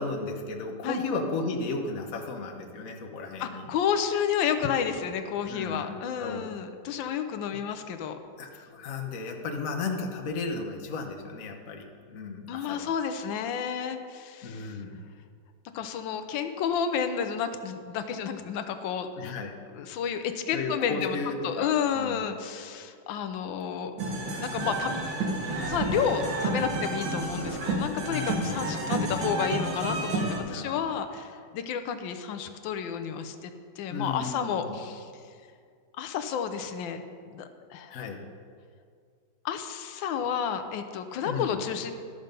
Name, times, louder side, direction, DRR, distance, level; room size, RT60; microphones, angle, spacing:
voice 1, 0.0-3.6 5.5-6.5 8.4-12.9 14.4-15.0 19.2-19.5 20.5-22.2 28.1-28.8 30.5-30.9 33.9-34.8 37.9-38.2 41.2-41.6, left 3 dB, 50° left, 2 dB, 1.2 m, -34 dB
voice 2, 3.4-8.2 12.5-14.7 15.7-19.3 19.7-21.2 21.4-23.9 24.4-25.0 25.6-35.1 36.0-38.0 39.4-41.9, left 7 dB, 80° left, 8 dB, 1.4 m, -31 dB
sound 1, 24.0-30.4, right 2 dB, 75° right, 2.0 m, -30 dB
12.0 x 6.6 x 5.2 m, 2.1 s
omnidirectional pair, 2.1 m